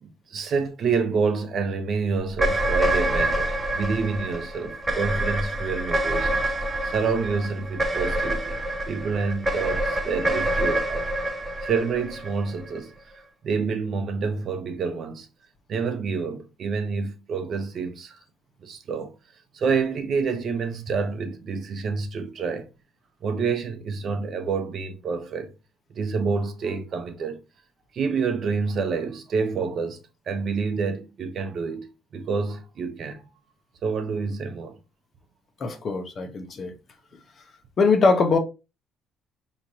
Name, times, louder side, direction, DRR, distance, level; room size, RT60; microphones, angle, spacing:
voice 1, 0.0-6.5 6.8-8.6 8.9-11.1 11.6-12.9 13.4-15.3 15.7-18.2 18.6-19.1 19.5-22.6 23.2-25.5 25.9-27.4 27.9-30.0 30.3-31.9 32.1-33.3 33.8-34.8, right 5 dB, 45° right, 0.7 m, -28 dB
sound 1, 2.4-12.8, right 1 dB, 10° right, 0.7 m, -26 dB
voice 2, 35.6-36.7 37.8-38.4, left 4 dB, 35° left, 0.7 m, -21 dB
5.0 x 3.1 x 2.7 m
cardioid pair, 150°, 0 cm